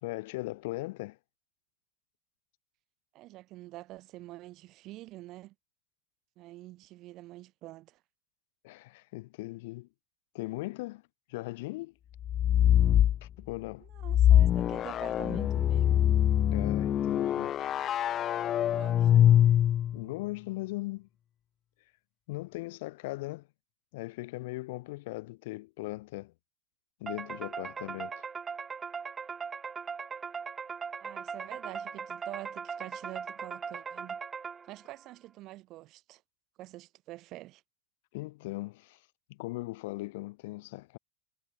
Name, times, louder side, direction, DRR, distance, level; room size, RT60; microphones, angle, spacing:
voice 1, 0.0-1.2 8.6-9.9 10.3-11.0 11.3-11.9 13.2-13.9 16.5-17.6 19.9-21.1 22.3-23.5 23.9-26.3 27.0-28.3 38.1-39.0 39.3-41.0, left 21 dB, 75° left, 0.7 m, -39 dB
voice 2, 3.1-5.5 6.4-8.0 13.8-16.1 18.6-19.3 31.0-34.2 34.6-36.2 36.6-37.6, right 17 dB, 55° right, 3.1 m, -46 dB
sound 1, 12.2-13.2 14.0-20.0, left 11 dB, 40° left, 0.3 m, -24 dB
sound 2, 27.1-34.9, right 6 dB, 25° right, 0.6 m, -39 dB
supercardioid pair, 115°, 0 cm